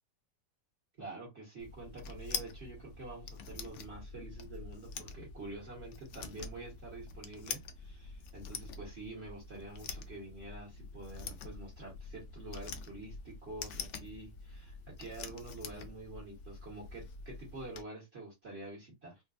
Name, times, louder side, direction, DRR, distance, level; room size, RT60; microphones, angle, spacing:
voice 1, 1.0-19.2, right 2 dB, 40° right, 1.3 m, -47 dB
sound 1, 1.6-17.8, left 5 dB, 75° left, 0.7 m, -45 dB
3.8 x 2.3 x 2.4 m
omnidirectional pair, 1.8 m